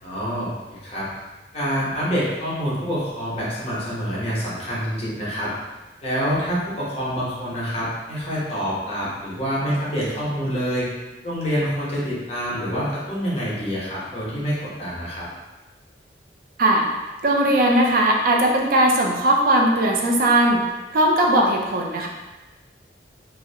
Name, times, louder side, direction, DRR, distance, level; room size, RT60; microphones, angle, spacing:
voice 1, 0.0-1.1 1.5-5.5 6.0-10.9 11.2-15.3, equal, 35° left, -8 dB, 0.7 m, -26 dB
voice 2, 17.2-20.6 20.9-22.1, right 1 dB, 55° right, 0 dB, 0.4 m, -18 dB
2.5 x 2.0 x 2.6 m, 1.1 s
head